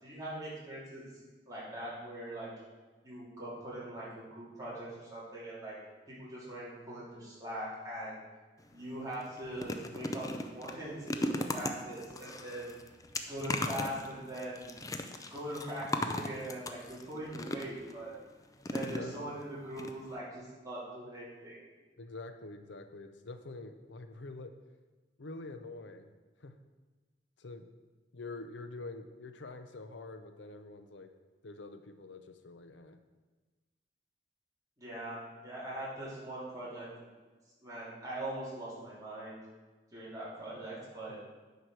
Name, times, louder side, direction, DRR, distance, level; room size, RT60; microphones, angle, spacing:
voice 1, 0.0-1.0 1.5-2.5 3.0-5.8 6.1-8.2 8.7-12.7 13.3-14.7 15.3-18.2 18.7-21.6 34.8-36.9 37.6-39.4 39.9-41.2, right 1 dB, 20° right, -8 dB, 3.0 m, -41 dB
sound 1, 8.6-8.8 9.1-17.9 18.6-19.4 19.8-19.9 20.2-20.3, left 1 dB, 20° left, 0.5 m, -38 dB
voice 2, 18.8-19.4 22.0-24.5 25.2-26.1 26.4-26.5 27.4-27.7 28.1-31.1 31.4-33.0, left 3 dB, 80° left, 8 dB, 0.7 m, -46 dB
9.4 x 4.8 x 6.1 m, 1.3 s
head